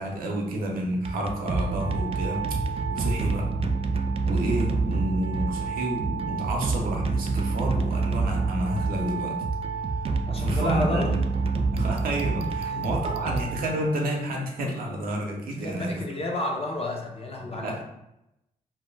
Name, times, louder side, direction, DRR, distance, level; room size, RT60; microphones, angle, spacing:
voice 1, 0.0-3.5 4.2-9.4 10.4-11.1 11.7-15.9 17.6-17.8, right 1 dB, 85° right, 0 dB, 0.6 m, -30 dB
sound 1, 0.9-14.1, right 4 dB, 40° right, 0.4 m, -27 dB
voice 2, 10.3-11.2 12.6-13.4 15.6-17.8, left 1 dB, 40° left, 1 dB, 0.7 m, -31 dB
2.6 x 2.2 x 3.3 m, 0.87 s
cardioid pair, 60°, 15 cm